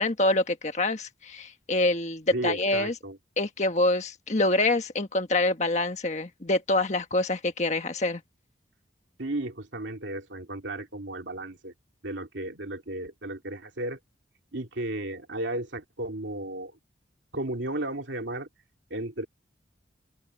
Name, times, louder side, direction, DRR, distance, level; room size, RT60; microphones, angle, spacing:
voice 1, 0.0-2.9 3.4-8.2, left 2 dB, 40° left, 1.4 m, -26 dB
voice 2, 2.3-3.2 9.2-11.7 12.0-14.0 14.5-16.7 17.3-18.5 18.9-19.3, right 1 dB, 80° right, 2.6 m, -34 dB
open air
head